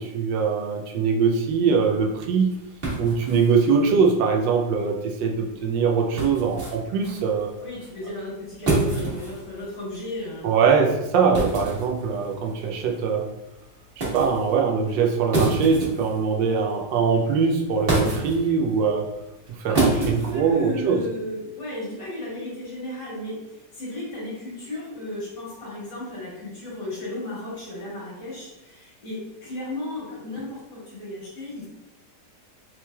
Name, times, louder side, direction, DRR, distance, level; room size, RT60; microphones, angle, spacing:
voice 1, 0.0-2.5 3.0-7.5 10.4-13.3 14.0-19.1 19.5-21.0, right 5 dB, 85° right, 2 dB, 1.3 m, -22 dB
sound 1, 1.5-21.1, right 2 dB, 35° right, 1.2 m, -30 dB
voice 2, 7.6-10.5 19.7-31.7, left 1 dB, 70° left, -7 dB, 2.2 m, -34 dB
4.1 x 3.1 x 2.2 m, 0.94 s
omnidirectional pair, 1.9 m